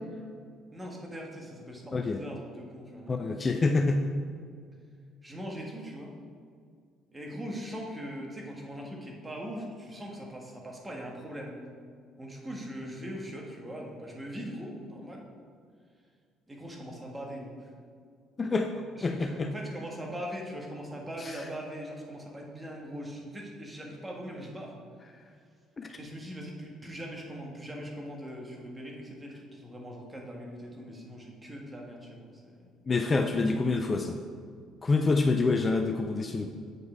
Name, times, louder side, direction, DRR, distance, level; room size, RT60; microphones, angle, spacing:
voice 1, 0.7-3.2 5.2-6.2 7.1-11.6 12.2-15.3 16.5-17.7 19.0-24.8 25.9-32.8, equal, 15° right, -1 dB, 1.8 m, -41 dB
voice 2, 3.1-4.0 18.4-18.7 19.0-19.5 21.2-21.4 25.8-26.0 32.9-34.2 34.8-36.5, left 3 dB, 30° left, 6 dB, 0.5 m, -27 dB
7.6 x 5.4 x 4.5 m, 2.1 s
figure-of-eight pair, 50°, 0 cm